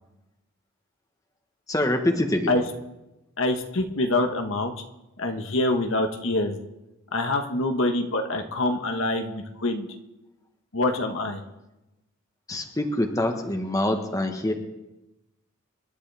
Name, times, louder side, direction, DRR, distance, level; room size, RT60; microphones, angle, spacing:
voice 1, 1.7-2.5 12.5-14.5, left 1 dB, 15° left, 4 dB, 1.3 m, -25 dB
voice 2, 3.4-4.7 5.2-6.6 7.1-9.9 10.7-11.4, left 2 dB, 70° left, 4 dB, 1.3 m, -25 dB
27.0 x 11.5 x 3.5 m, 0.99 s
head